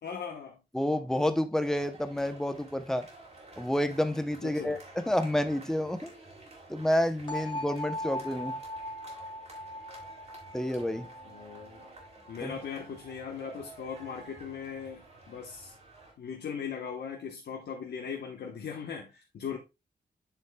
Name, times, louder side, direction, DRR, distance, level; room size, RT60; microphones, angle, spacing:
voice 1, 0.0-0.6 4.4-4.8 11.3-11.9 12.3-15.7 16.2-19.6, left 6 dB, 80° left, 1.0 m, -39 dB
voice 2, 0.7-3.1 3.6-6.1 6.7-8.6 10.5-11.1 12.4-12.6, left 1 dB, 5° left, 0.7 m, -29 dB
sound 1, 1.6-16.1, right 2 dB, 40° right, 2.6 m, -52 dB
sound 2, 7.3-13.1, left 1 dB, 30° left, 1.8 m, -40 dB
8.1 x 6.4 x 2.2 m
wide cardioid pair, 150°, 17 cm